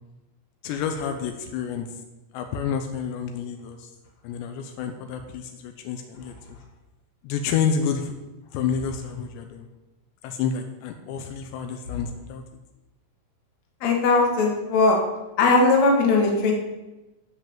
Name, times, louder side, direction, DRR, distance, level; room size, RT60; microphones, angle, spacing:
voice 1, 0.6-1.9 2.3-3.9 4.2-6.3 7.2-8.1 8.5-9.7 10.2-12.4, left 7 dB, 80° left, 5 dB, 3.1 m, -29 dB
voice 2, 13.8-15.0 15.4-16.5, left 3 dB, 50° left, 0 dB, 2.7 m, -19 dB
13.5 x 5.8 x 7.2 m, 1.0 s
omnidirectional pair, 5.1 m